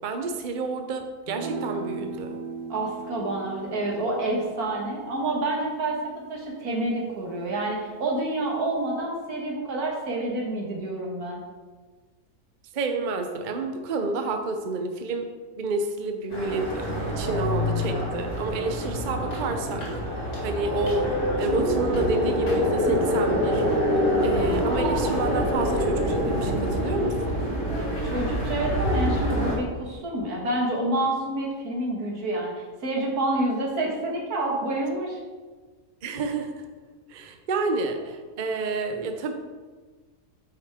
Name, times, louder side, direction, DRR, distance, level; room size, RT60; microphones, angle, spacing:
voice 1, 0.0-2.4 12.7-15.3 15.6-19.9 20.4-23.6 24.2-27.4 36.0-36.5 37.1-39.3, right 3 dB, 50° right, 5 dB, 0.6 m, -29 dB
sound 1, 1.3-7.8, right 4 dB, 85° right, 1.4 m, -39 dB
voice 2, 2.7-6.0 6.3-11.4 27.8-35.2, right 2 dB, 70° right, -1 dB, 2.0 m, -28 dB
sound 2, 16.3-29.6, equal, 70° left, 2.5 m, -25 dB
8.7 x 5.9 x 3.6 m, 1.4 s
omnidirectional pair, 1.7 m